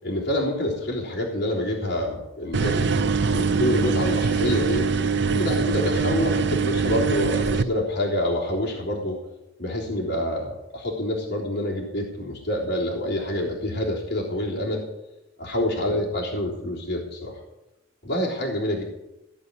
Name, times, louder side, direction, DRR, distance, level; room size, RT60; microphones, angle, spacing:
voice 1, 0.0-4.9 5.3-9.2 9.6-14.8 15.4-17.4 18.0-18.8, left 1 dB, 50° left, -5 dB, 3.5 m, -27 dB
sound 1, 2.5-7.6, right 5 dB, 55° right, 0.6 m, -23 dB
16.0 x 5.5 x 9.8 m, 0.94 s
head